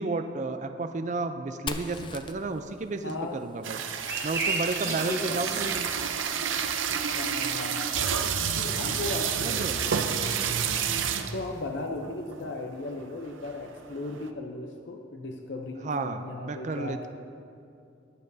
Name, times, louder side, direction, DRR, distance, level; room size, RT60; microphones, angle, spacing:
voice 1, 0.0-3.8 4.2-5.9 9.4-9.7 15.8-17.1, right 3 dB, 40° right, 8 dB, 0.4 m, -32 dB
Fire, 1.7-5.3, left 4 dB, 25° left, 0.4 m, -42 dB
voice 2, 3.0-3.4 4.8-5.6 7.1-8.3 8.5-10.8 11.3-17.1, left 2 dB, 70° left, 3 dB, 0.6 m, -37 dB
sound 1, 3.6-11.5 12.0-12.1 12.3-12.6 13.0-14.3, right 7 dB, 90° right, 0.6 m, -29 dB
sound 2, 3.9-7.2 7.5-9.4, right 3 dB, 15° right, 1.3 m, -35 dB
21.0 x 7.5 x 2.7 m, 2.5 s
head